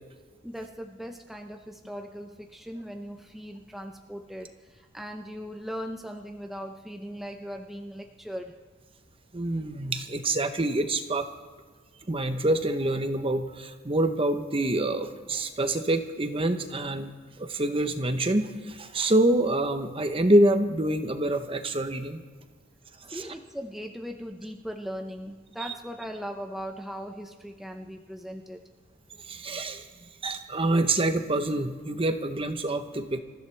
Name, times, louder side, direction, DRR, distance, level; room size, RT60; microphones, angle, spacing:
voice 1, 0.4-8.6 23.1-28.6, equal, ahead, 2 dB, 0.7 m, -39 dB
voice 2, 9.3-11.2 12.1-17.1 17.4-22.2 23.1-23.3 25.6-25.7 29.3-29.8 30.2-33.2, right 1 dB, 25° right, 8 dB, 0.9 m, -26 dB
27.0 x 14.5 x 3.4 m, 1.4 s
head